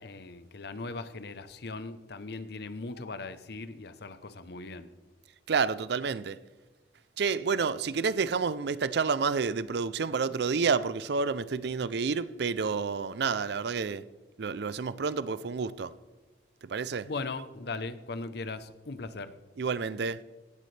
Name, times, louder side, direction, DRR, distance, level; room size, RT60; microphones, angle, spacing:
voice 1, 0.0-4.9 17.1-19.3, left 3 dB, 65° left, 0.8 m, -39 dB
voice 2, 5.5-6.4 7.2-14.0 14.4-15.9 16.7-17.1 19.6-20.2, right 5 dB, 65° right, 0.5 m, -29 dB
17.5 x 12.0 x 3.3 m
head